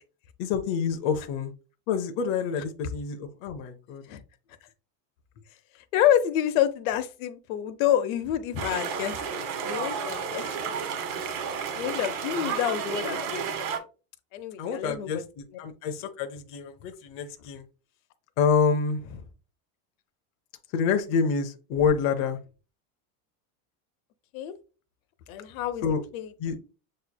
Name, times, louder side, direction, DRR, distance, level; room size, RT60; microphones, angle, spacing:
voice 1, 0.4-1.5 1.9-4.0 14.6-17.6 18.4-19.2 20.7-22.4 25.8-26.0 26.4-26.6, left 5 dB, 35° left, 0.5 m, -27 dB
voice 2, 5.7-10.8 11.7-13.4 14.3-15.2 24.3-24.5 25.3-25.9 26.1-26.3, left 10 dB, 80° left, 0.8 m, -28 dB
sound 1, 8.6-13.8, right 6 dB, 85° right, 1.3 m, -32 dB
6.8 x 3.1 x 2.2 m
cardioid pair, 175°, 40 cm